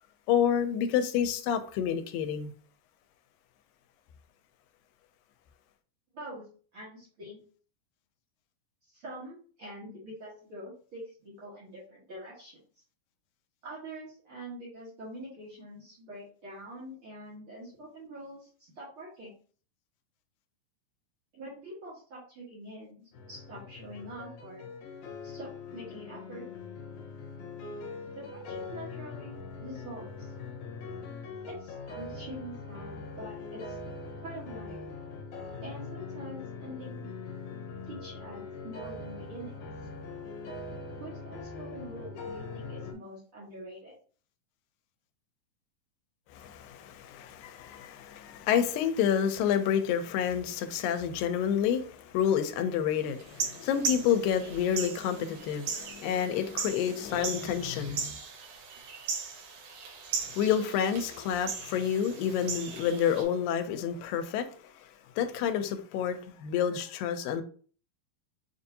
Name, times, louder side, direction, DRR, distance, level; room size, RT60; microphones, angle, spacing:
voice 1, 0.3-2.5 46.3-58.2 60.1-64.9 65.2-67.4, left 8 dB, 85° left, 2.2 m, -29 dB
voice 2, 6.1-6.4 6.7-7.4 8.8-12.6 13.6-19.3 21.3-24.6 25.2-26.4 28.1-30.3 31.4-33.8 34.2-34.8 35.6-37.1 37.9-39.6 41.0-43.9, right 1 dB, 55° right, 1.6 m, -45 dB
sound 1, 23.1-42.9, left 4 dB, 70° left, 2.1 m, -42 dB
sound 2, 53.2-63.2, right 5 dB, 80° right, 2.8 m, -38 dB
6.6 x 2.6 x 2.7 m
omnidirectional pair, 4.0 m